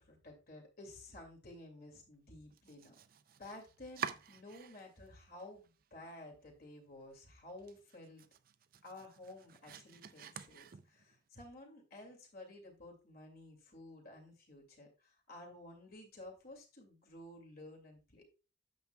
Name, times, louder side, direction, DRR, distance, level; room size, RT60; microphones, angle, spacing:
voice 1, 0.0-3.0 3.4-8.2 8.8-18.2, left 1 dB, 45° left, 1 dB, 2.3 m, -53 dB
Domestic sounds home sounds, 2.5-5.1 5.4-6.1 6.5-6.6 7.0-7.1 7.5-11.2, right 7 dB, 45° right, 0.4 m, -48 dB
9.1 x 7.4 x 2.3 m, 0.32 s
head